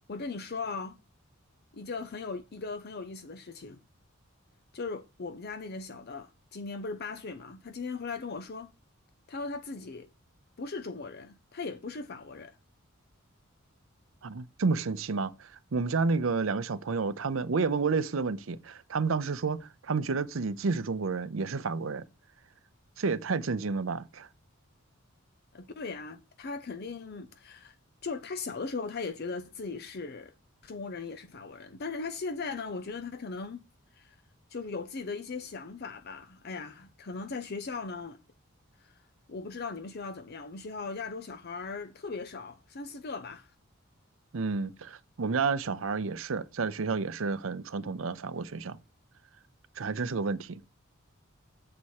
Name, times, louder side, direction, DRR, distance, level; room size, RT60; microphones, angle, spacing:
voice 1, 0.1-1.0 1.7-3.8 4.7-8.7 9.3-10.1 10.6-12.6 25.5-27.8 28.0-30.3 30.6-33.6 33.9-34.2 34.5-38.2 38.8-39.0 39.3-43.5, left 4 dB, 50° left, 0.6 m, -38 dB
voice 2, 14.2-22.0 23.0-24.3 44.3-48.8 49.8-50.6, right 4 dB, 70° right, 0.6 m, -30 dB
7.7 x 4.2 x 6.3 m
head